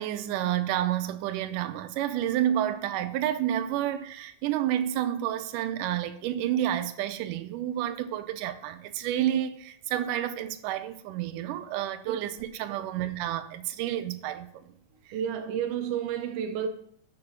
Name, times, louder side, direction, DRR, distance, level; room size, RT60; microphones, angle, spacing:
voice 1, 0.0-14.6, right 11 dB, 85° right, 2.1 m, -30 dB
voice 2, 15.1-16.7, right 8 dB, 65° right, 1.6 m, -30 dB
6.9 x 6.8 x 5.8 m
omnidirectional pair, 3.7 m